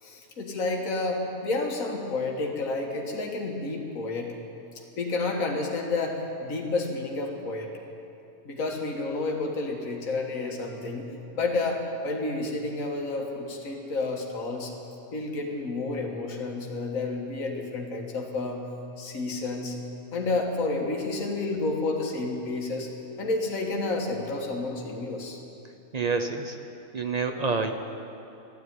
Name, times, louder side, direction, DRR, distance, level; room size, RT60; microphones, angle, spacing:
voice 1, 0.0-4.3 4.8-7.8 8.5-14.7 15.1-18.7 19.0-19.8 20.1-22.9 23.2-25.4, left 3 dB, 65° left, 0 dB, 2.0 m, -30 dB
voice 2, 25.9-26.6 26.9-27.7, right 4 dB, 35° right, 6 dB, 0.7 m, -27 dB
13.5 x 11.0 x 9.5 m, 2.9 s
omnidirectional pair, 1.5 m